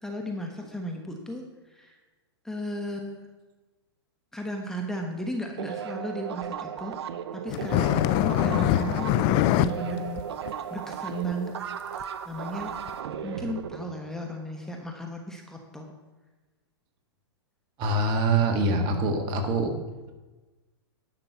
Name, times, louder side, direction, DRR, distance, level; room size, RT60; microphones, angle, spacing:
voice 1, 0.0-1.9 2.4-3.3 4.3-6.9 7.3-10.2 10.5-11.5 12.2-12.7 13.2-15.9, equal, 5° left, 1 dB, 1.2 m, -35 dB
sound 1, 5.6-14.7, right 8 dB, 70° right, 0.8 m, -36 dB
sound 2, 7.5-9.7 10.1-10.2 10.5-10.6 11.2-11.3 12.0-12.1 12.9-13.0, left 13 dB, 40° left, 0.5 m, -23 dB
voice 2, 17.8-19.7, right 2 dB, 35° right, 5 dB, 1.8 m, -24 dB
11.0 x 6.1 x 7.1 m, 1.2 s
hypercardioid pair, 125°, 14 cm